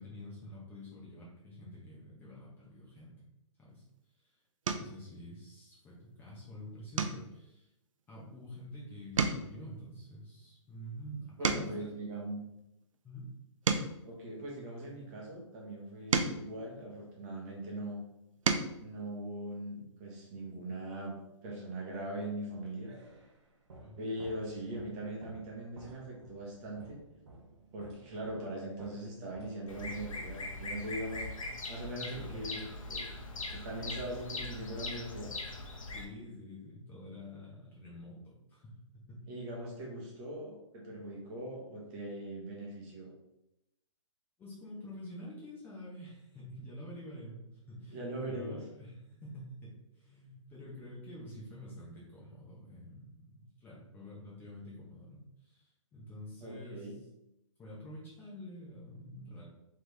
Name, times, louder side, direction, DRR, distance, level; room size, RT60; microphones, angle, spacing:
voice 1, 0.0-3.2 3.6-3.8 4.2-4.4 4.8-7.7 8.1-11.9 12.1-12.2 13.0-13.3 23.8-24.0 32.0-32.6 35.9-39.3 44.4-56.9 57.6-59.4, equal, 10° left, -6 dB, 0.9 m, -48 dB
sound 1, 3.8-4.0 4.6-5.0 5.5-5.9 6.2-6.4 6.9-8.7 9.0-12.0 12.6-15.0 15.7-17.6 18.1-18.8 20.2-20.3 20.6-20.8, right 5 dB, 80° right, 0.6 m, -36 dB
voice 2, 11.4-12.4 14.1-18.0 18.8-21.2 21.4-22.9 24.0-27.0 27.7-33.1 33.5-35.3 39.3-43.1 47.9-48.6 56.4-57.0, right 1 dB, 25° right, -3 dB, 1.1 m, -41 dB
sound 2, 22.4-30.5, right 2 dB, 60° right, 1.0 m, -55 dB
Bird vocalization bird call bird song, 29.7-36.0, left 2 dB, 90° left, 0.8 m, -41 dB
3.6 x 3.2 x 3.3 m, 0.87 s
hypercardioid pair, 150°, 17 cm